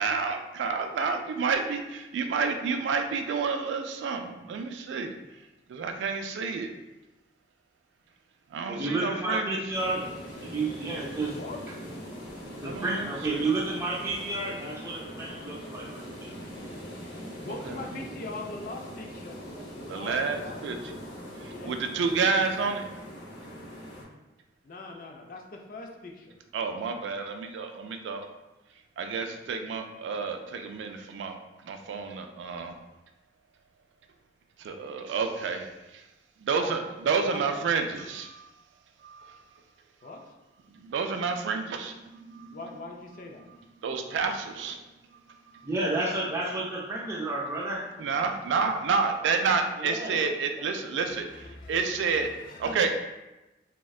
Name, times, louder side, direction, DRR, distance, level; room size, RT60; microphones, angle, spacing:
voice 1, 0.0-5.1 5.7-6.7 8.5-9.6 12.6-13.4 17.6-17.9 19.9-21.0 21.4-22.8 26.5-28.3 29.0-31.4 31.6-32.7 34.6-36.1 36.4-38.5 39.0-39.6 40.2-40.3 40.7-42.6 43.5-44.8 45.1-45.4 48.0-52.3 52.6-52.9, right 5 dB, 85° right, 5 dB, 0.3 m, -30 dB
voice 2, 8.7-10.1 10.4-11.4 12.6-16.3 45.6-47.9 49.8-50.3 50.6-50.7, right 2 dB, 15° right, -4 dB, 0.4 m, -31 dB
sound 1, 9.7-24.0, equal, 90° left, 0.7 m, -42 dB
voice 3, 17.4-19.4 19.8-20.6 21.5-21.8 24.6-26.3 36.6-36.7 37.3-37.5 40.0-40.2 42.5-43.4 51.0-52.9, left 2 dB, 50° left, 2 dB, 0.4 m, -41 dB
3.5 x 2.1 x 2.3 m, 1.0 s
head